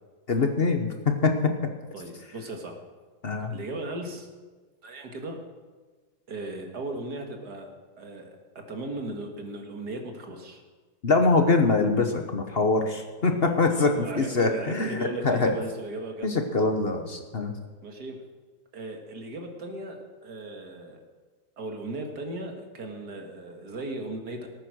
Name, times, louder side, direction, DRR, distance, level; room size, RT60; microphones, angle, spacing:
voice 1, 0.3-1.5 3.2-3.5 11.0-15.5 16.2-17.5, left 3 dB, 40° left, 5 dB, 1.2 m, -24 dB
voice 2, 1.9-2.8 3.5-4.3 4.8-5.4 6.3-7.7 8.0-10.6 13.3-16.3 17.8-18.2 18.7-21.0 21.6-24.5, right 2 dB, 80° right, 3 dB, 2.4 m, -37 dB
18.5 x 9.1 x 6.3 m, 1.3 s
omnidirectional pair, 1.7 m